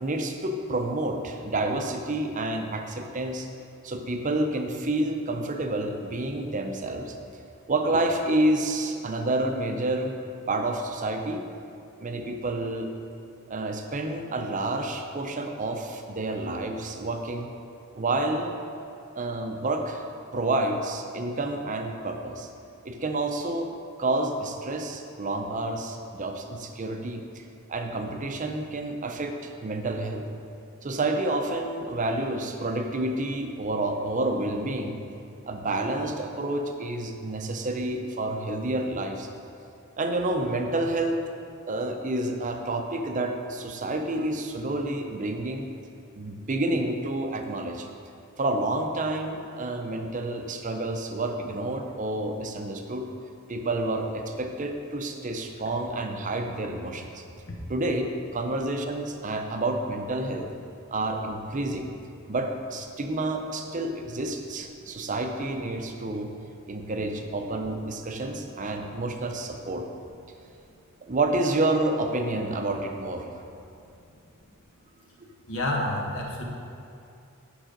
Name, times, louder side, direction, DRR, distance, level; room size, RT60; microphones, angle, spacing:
voice 1, 0.0-3.5 3.8-7.2 7.7-10.1 10.5-11.4 12.0-12.9 13.5-17.5 18.0-18.6 19.2-20.1 20.3-22.5 22.8-23.7 24.0-30.3 30.8-35.0 35.4-39.3 40.0-41.2 41.7-45.7 46.1-47.9 48.4-53.0 53.5-57.2 57.7-60.5 60.9-61.9 62.3-66.3 66.7-69.8 71.0-73.3 75.2-75.3, right 2 dB, 35° right, 4 dB, 0.6 m, -29 dB
voice 2, 75.5-76.4, left 1 dB, 65° left, -2 dB, 1.2 m, -29 dB
9.0 x 4.9 x 5.1 m, 2.6 s
head